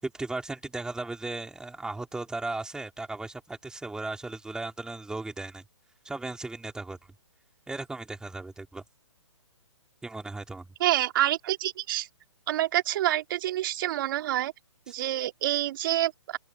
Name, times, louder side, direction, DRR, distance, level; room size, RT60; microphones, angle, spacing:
voice 1, 0.0-5.6 6.0-7.0 7.7-8.8 10.0-10.7, right 2 dB, 5° right, 4.5 m, -36 dB
voice 2, 10.8-12.1 12.5-14.5 14.9-16.4, right 14 dB, 45° right, 3.3 m, -27 dB
open air
figure-of-eight pair, 135°, 16 cm